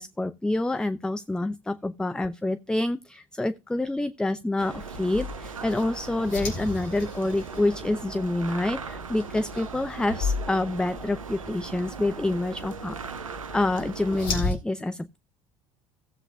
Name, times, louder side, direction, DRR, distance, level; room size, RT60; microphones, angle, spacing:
voice 1, 0.0-13.0 13.5-15.2, left 2 dB, 5° left, 0.5 m, -27 dB
sound 1, 4.6-14.4, right 6 dB, 80° right, 0.6 m, -39 dB
sound 2, 4.7-14.6, left 4 dB, 55° left, 3.5 m, -36 dB
17.0 x 7.8 x 2.4 m
figure-of-eight pair, 60°, 17 cm